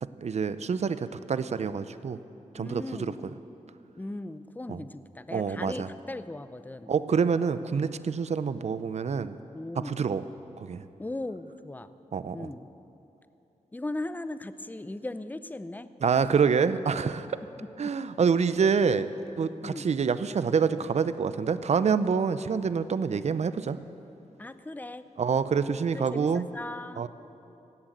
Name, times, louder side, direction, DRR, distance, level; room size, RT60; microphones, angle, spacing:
voice 1, 0.0-2.2 2.5-3.1 4.7-4.8 5.3-5.9 6.9-9.4 9.8-10.2 10.6-10.8 12.1-12.5 16.0-17.4 17.8-19.1 19.4-23.8 25.2-26.4 27.0-27.1, right 6 dB, 55° right, 13 dB, 0.6 m, -27 dB
voice 2, 2.6-3.3 4.0-6.9 9.5-10.1 11.0-12.0 12.3-12.7 13.7-15.9 17.8-17.9 19.6-19.9 24.4-25.0 25.9-27.0, left 2 dB, 15° left, 13 dB, 0.6 m, -38 dB
17.0 x 8.2 x 7.9 m, 2.8 s
cardioid pair, 65°, 14 cm